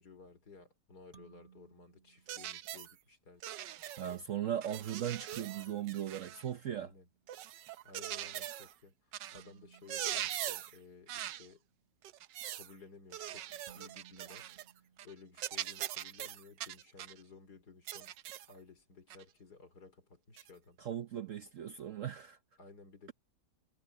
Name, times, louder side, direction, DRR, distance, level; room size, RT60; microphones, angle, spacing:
voice 1, 0.0-3.5 6.7-7.1 7.8-11.6 12.5-14.5 15.0-18.1 18.5-20.8 22.6-23.1, left 4 dB, 60° left, 4.3 m, -56 dB
sound 1, 1.1-2.8 5.3-7.3 9.3-11.5 13.7-15.7, right 7 dB, 25° right, 1.6 m, -62 dB
sound 2, 2.3-2.9 3.4-4.2 4.6-6.5 7.3-8.7 9.1-9.4 9.7-10.8 11.1-11.5 12.0-12.7 13.1-14.7 15.0-15.1 15.4-17.2 17.9-18.5 19.1-19.2 20.4-20.5, right 12 dB, 80° right, 1.4 m, -42 dB
voice 2, 4.0-6.9 20.8-22.4, right 10 dB, 60° right, 0.9 m, -38 dB
omnidirectional pair, 1.9 m